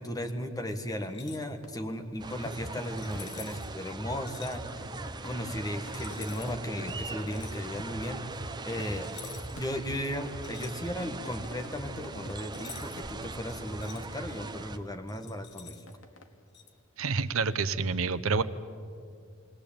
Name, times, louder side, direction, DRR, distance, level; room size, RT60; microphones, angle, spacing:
voice 1, 0.0-4.9 5.2-8.2 8.6-9.1 9.5-15.8, left 1 dB, 15° left, 6 dB, 1.4 m, -36 dB
sound 1, 1.1-1.5 3.0-3.7 4.3-4.6 5.9-6.5 7.3-7.6 9.0-9.7 10.0-11.2 12.5-13.1 13.5-14.0 15.1-15.9 16.5-16.7, left 8 dB, 55° left, 1.5 m, -48 dB
sound 2, 1.6-17.6, left 1 dB, 70° left, 1.6 m, -53 dB
sound 3, 2.2-14.8, right 2 dB, 20° right, 0.8 m, -40 dB
voice 2, 17.0-18.4, right 4 dB, 75° right, 14 dB, 0.8 m, -28 dB
21.0 x 18.0 x 8.7 m, 2.5 s
head